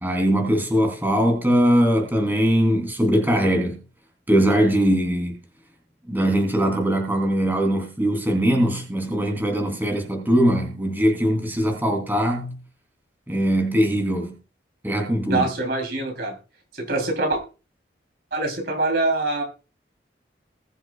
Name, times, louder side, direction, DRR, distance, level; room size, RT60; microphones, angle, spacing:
voice 1, 0.0-3.8 4.3-5.3 6.1-12.5 13.3-14.4 14.8-15.5, equal, 10° right, 3.1 m, -21 dB
voice 2, 15.3-16.4 16.7-17.4 18.3-19.4, right 2 dB, 60° right, 3.3 m, -24 dB
20.5 x 7.5 x 2.3 m
head